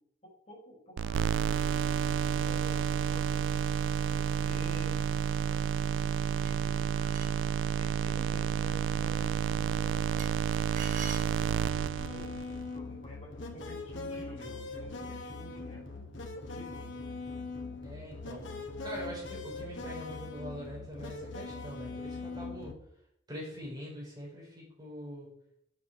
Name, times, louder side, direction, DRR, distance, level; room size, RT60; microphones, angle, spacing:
voice 1, 0.2-3.5 4.0-6.9 7.8-10.4 11.0-12.3 12.6-16.0 16.3-17.0, equal, 35° left, -4 dB, 5.0 m, -50 dB
sound 1, 1.0-12.6, right 7 dB, 90° right, 0.3 m, -30 dB
sound 2, 6.4-7.5 10.2-11.9, right 4 dB, 45° right, 1.7 m, -44 dB
sound 3, 12.0-22.7, left 3 dB, 90° left, 1.8 m, -41 dB
voice 2, 17.8-18.5 18.8-22.7 23.3-25.3, equal, 20° right, -4 dB, 5.0 m, -43 dB
7.7 x 7.7 x 7.5 m, 0.71 s
head